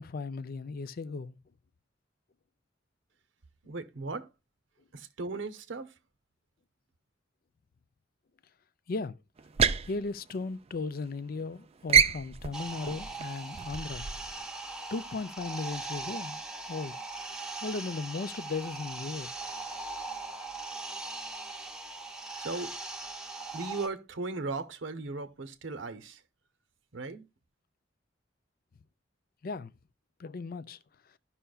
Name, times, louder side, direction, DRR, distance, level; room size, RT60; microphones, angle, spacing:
voice 1, 0.0-1.4 8.9-9.2 9.9-14.1 14.9-16.4 16.7-17.0 17.6-19.3 29.4-29.7 30.2-30.8, left 3 dB, 50° left, 0.4 m, -36 dB
voice 2, 3.6-4.3 4.9-5.9 22.4-22.8 23.5-26.2 26.9-27.3, right 3 dB, 70° right, 0.7 m, -37 dB
sound 1, 9.4-11.0 11.3-11.6 11.9-14.4, right 7 dB, 30° right, 0.3 m, -28 dB
sound 2, 12.5-23.9, right 3 dB, 5° right, 0.8 m, -40 dB
14.0 x 5.6 x 2.3 m
head